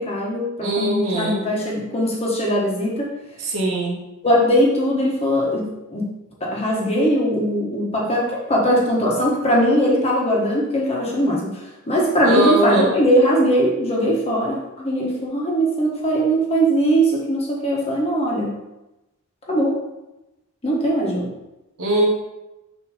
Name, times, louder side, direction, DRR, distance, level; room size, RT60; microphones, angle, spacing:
voice 1, 0.0-3.1 4.2-6.1 6.4-18.5 19.5-19.8 20.6-21.3, equal, 30° left, -3 dB, 1.3 m, -20 dB
voice 2, 0.6-1.4 3.4-4.0 12.2-12.9 21.8-22.1, right 2 dB, 70° right, -2 dB, 1.5 m, -21 dB
6.1 x 3.1 x 5.0 m, 0.96 s
head